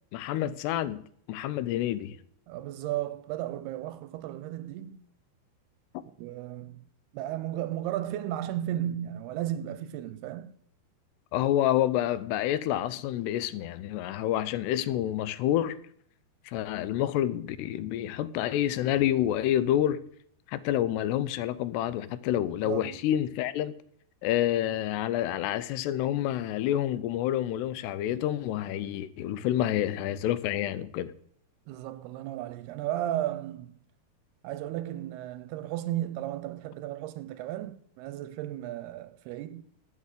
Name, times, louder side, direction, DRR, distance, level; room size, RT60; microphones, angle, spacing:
voice 1, 0.1-2.2 5.9-6.0 11.3-15.8 16.5-20.0 20.5-23.8 24.2-31.1, left 12 dB, 85° left, 2.8 m, -28 dB
voice 2, 2.5-5.0 6.2-6.8 7.1-10.6 22.6-23.0 31.7-33.8 34.4-39.6, right 13 dB, 80° right, 2.5 m, -34 dB
12.0 x 8.7 x 6.7 m
omnidirectional pair, 4.8 m